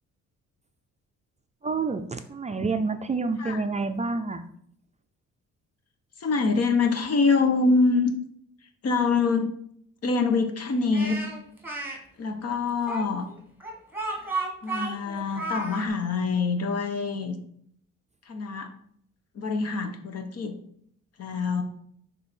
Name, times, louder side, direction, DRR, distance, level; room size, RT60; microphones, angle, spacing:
voice 1, 1.6-4.4, right 4 dB, 25° right, 7 dB, 0.4 m, -28 dB
voice 2, 6.2-8.1 8.8-9.5 10.0-11.2 12.2-13.3 14.6-17.4 18.3-18.7 19.3-20.6 21.2-21.6, left 4 dB, 55° left, 6 dB, 1.0 m, -25 dB
Speech, 10.9-12.0 12.9-15.9, right 3 dB, 5° right, 1.4 m, -33 dB
6.4 x 3.5 x 4.3 m, 0.66 s
cardioid pair, 90°, 30 cm